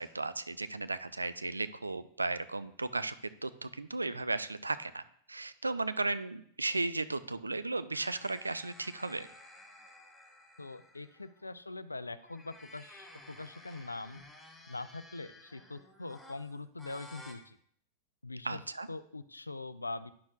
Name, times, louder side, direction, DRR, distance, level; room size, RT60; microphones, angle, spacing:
voice 1, 0.0-3.2 3.4-5.0 5.3-9.3 18.4-18.9, right 3 dB, 80° right, 13 dB, 0.3 m, -35 dB
sound 1, 7.9-11.5 12.1-17.3, left 1 dB, 5° left, 1.1 m, -54 dB
voice 2, 10.6-14.2 14.7-17.6 18.2-18.6 18.9-20.1, left 2 dB, 80° left, 15 dB, 0.3 m, -43 dB
9.4 x 6.1 x 2.4 m, 0.64 s
figure-of-eight pair, 90°, 0 cm